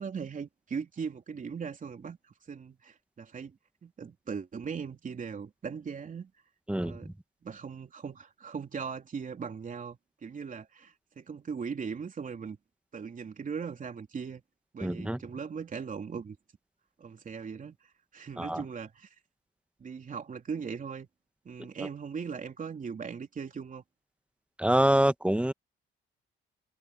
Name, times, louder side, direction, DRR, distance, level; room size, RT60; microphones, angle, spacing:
voice 1, 0.0-6.3 6.8-7.1 7.4-12.6 12.9-14.4 14.7-16.4 17.0-17.8 18.1-19.1 19.8-21.1 21.4-23.8, right 6 dB, 40° right, 3.3 m, -39 dB
voice 2, 6.7-7.1 14.8-15.2 18.4-18.6 21.8-21.9 24.6-25.5, right 1 dB, 5° right, 1.4 m, -26 dB
cardioid pair, 90°, 20 cm